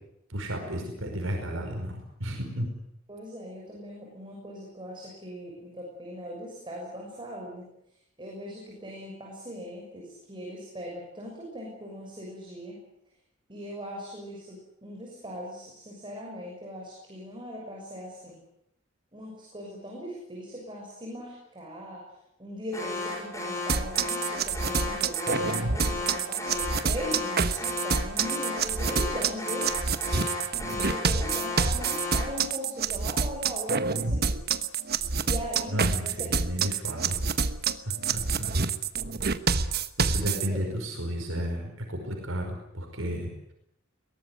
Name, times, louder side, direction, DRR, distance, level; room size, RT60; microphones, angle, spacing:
voice 1, 0.3-2.7 35.7-37.2 37.9-38.7 40.0-43.3, equal, 75° right, 2 dB, 5.3 m, -33 dB
voice 2, 3.1-7.6 8.2-12.8 13.5-18.4 19.1-22.0 22.4-29.7 30.6-34.4 35.2-36.3 40.5-40.6, equal, 25° right, -2 dB, 6.5 m, -39 dB
Alarm, 22.7-32.4, left 2 dB, 15° left, 7.1 m, -34 dB
sound 1, 23.7-40.5, right 5 dB, 50° right, 1.2 m, -27 dB
22.5 x 18.5 x 9.5 m, 0.79 s
head